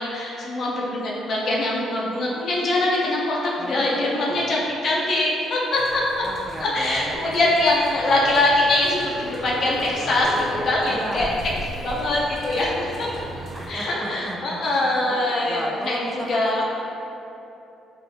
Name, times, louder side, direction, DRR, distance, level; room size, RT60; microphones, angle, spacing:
voice 1, 0.0-6.2 6.6-11.3 11.8-13.1 13.7-16.6, left 2 dB, 60° left, -4 dB, 0.7 m, -23 dB
voice 2, 3.6-4.4 6.2-7.5 8.0-8.8 10.9-11.3 13.5-14.6 15.1-16.6, right 1 dB, 20° right, 0 dB, 0.3 m, -34 dB
sound 1, 5.7-13.7, right 1 dB, 55° right, 0.8 m, -36 dB
4.0 x 2.1 x 2.7 m, 2.8 s
supercardioid pair, 65°, 0 cm